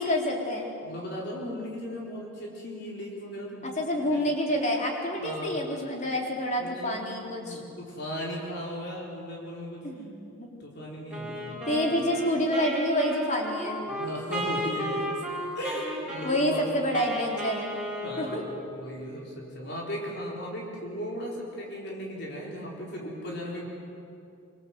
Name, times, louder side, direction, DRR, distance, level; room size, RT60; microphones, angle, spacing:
voice 1, 0.0-0.7 3.8-7.6 9.8-10.5 11.7-13.9 16.2-17.6 18.2-18.4, equal, 35° left, 0 dB, 4.0 m, -28 dB
voice 2, 0.8-3.7 4.0-4.2 5.2-5.7 6.6-9.9 10.6-12.2 13.9-15.2 15.5-17.0 18.0-23.7, equal, 55° left, -3 dB, 4.5 m, -37 dB
Wind instrument woodwind instrument, 11.1-18.8, equal, 5° right, 6.9 m, -34 dB
25.5 x 25.0 x 8.0 m, 2.6 s
head